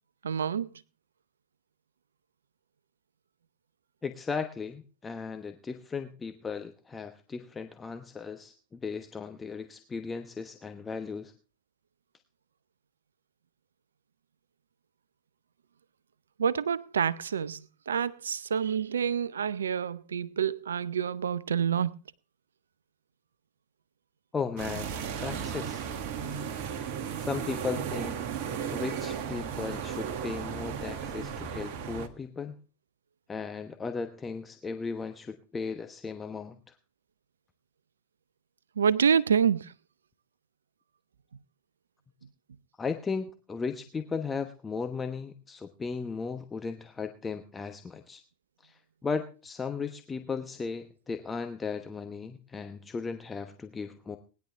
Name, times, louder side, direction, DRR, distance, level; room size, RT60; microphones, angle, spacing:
voice 1, 0.2-0.8 16.4-21.9 38.8-39.7, right 7 dB, 70° right, 0.5 m, -27 dB
voice 2, 4.0-11.3 24.3-24.9 25.2-25.9 26.8-26.9 27.2-28.2 28.7-32.6 33.3-36.6 42.8-48.2 48.6-54.2, left 5 dB, 15° left, 1.1 m, -36 dB
sound 1, 24.6-32.1, right 7 dB, 50° right, 1.5 m, -35 dB
19.5 x 10.5 x 3.4 m
figure-of-eight pair, 85°, 0 cm